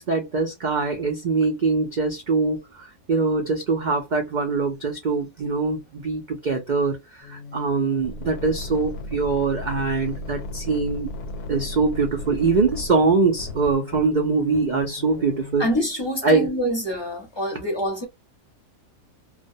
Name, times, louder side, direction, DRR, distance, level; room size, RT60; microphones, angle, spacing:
voice 1, 0.0-11.1 11.5-15.7 16.2-16.5, right 4 dB, 90° right, 0.4 m, -23 dB
sound 1, 7.2-15.8, left 2 dB, 85° left, 1.1 m, -36 dB
voice 2, 15.6-18.1, equal, 25° left, 0.6 m, -26 dB
2.4 x 2.1 x 2.6 m
omnidirectional pair, 1.6 m